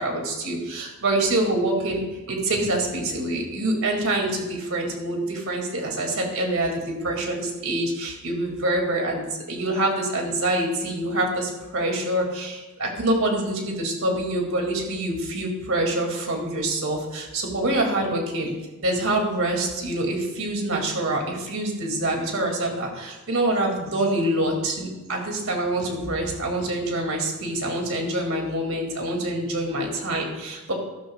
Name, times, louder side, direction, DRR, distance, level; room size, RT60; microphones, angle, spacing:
voice 1, 0.0-18.5 18.8-30.7, right 1 dB, 75° right, 1 dB, 2.5 m, -26 dB
14.5 x 13.0 x 2.4 m, 1.1 s
head